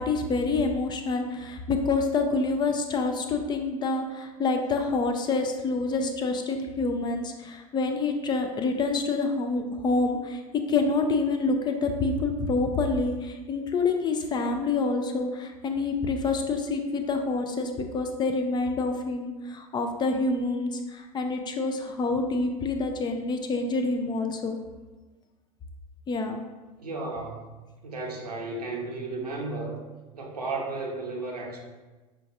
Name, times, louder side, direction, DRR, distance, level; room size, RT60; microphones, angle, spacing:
voice 1, 0.0-10.4 10.7-24.6 26.1-26.4, left 3 dB, 25° left, 5 dB, 0.4 m, -27 dB
voice 2, 26.8-27.4 27.8-29.8 30.1-31.6, right 3 dB, 85° right, -1 dB, 0.7 m, -33 dB
5.6 x 2.4 x 2.5 m, 1.2 s
figure-of-eight pair, 80°, 20 cm